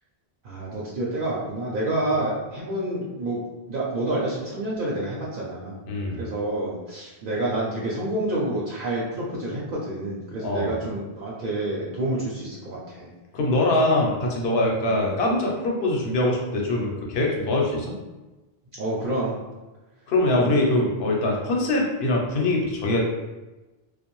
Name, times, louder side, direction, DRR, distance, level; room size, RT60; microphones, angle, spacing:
voice 1, 0.4-3.4 3.7-5.8 6.2-13.1 14.9-15.0 18.8-19.4 20.4-20.5, right 1 dB, 60° right, -5 dB, 0.7 m, -28 dB
voice 2, 5.9-6.2 10.4-10.7 13.3-17.9 20.1-23.0, left 2 dB, 80° left, -1 dB, 0.9 m, -23 dB
2.5 x 2.2 x 2.9 m, 1.1 s
omnidirectional pair, 1.0 m